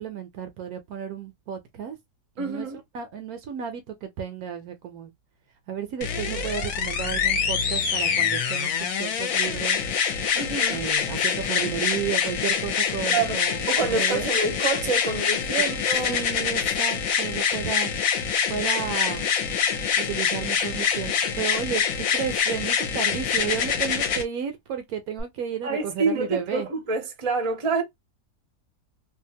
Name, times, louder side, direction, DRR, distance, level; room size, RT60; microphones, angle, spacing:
voice 1, 0.0-2.0 2.4-2.7 2.9-5.1 5.7-9.8 10.7-14.3 15.6-15.7 16.1-17.9 18.5-19.3 20.0-26.7, right 8 dB, 70° right, 1.0 m, -32 dB
voice 2, 2.4-2.8 10.3-10.8 13.1-13.4 13.7-16.2 25.6-27.8, right 4 dB, 30° right, 0.6 m, -27 dB
sound 1, 6.0-24.2 25.2-25.3, left 7 dB, 60° left, 1.0 m, -25 dB
2.7 x 2.4 x 2.7 m
omnidirectional pair, 1.8 m